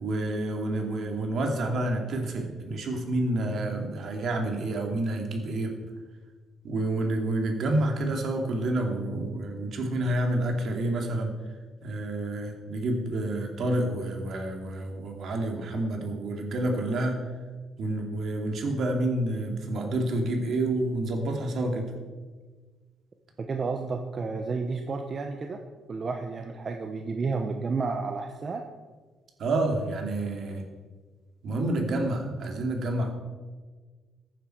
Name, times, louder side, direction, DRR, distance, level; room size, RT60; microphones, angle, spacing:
voice 1, 0.0-5.7 6.6-11.4 11.8-17.2 17.8-21.9 29.4-30.6 31.4-33.1, right 1 dB, 65° right, 2 dB, 2.6 m, -29 dB
voice 2, 23.4-25.6 25.9-28.7, right 4 dB, 40° right, 5 dB, 1.0 m, -31 dB
15.0 x 9.4 x 4.6 m, 1.4 s
cardioid pair, 90°, 0 cm